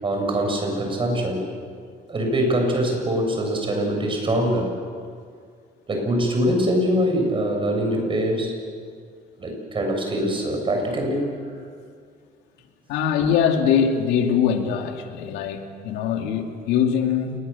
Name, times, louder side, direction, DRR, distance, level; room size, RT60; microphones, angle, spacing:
voice 1, 0.0-1.4 2.1-4.7 5.9-8.5 9.4-11.2, equal, 30° right, 2 dB, 7.3 m, -23 dB
voice 2, 12.9-17.3, left 7 dB, 90° left, 4 dB, 2.4 m, -22 dB
28.0 x 21.0 x 7.1 m, 2.1 s
cardioid pair, 110°, 17 cm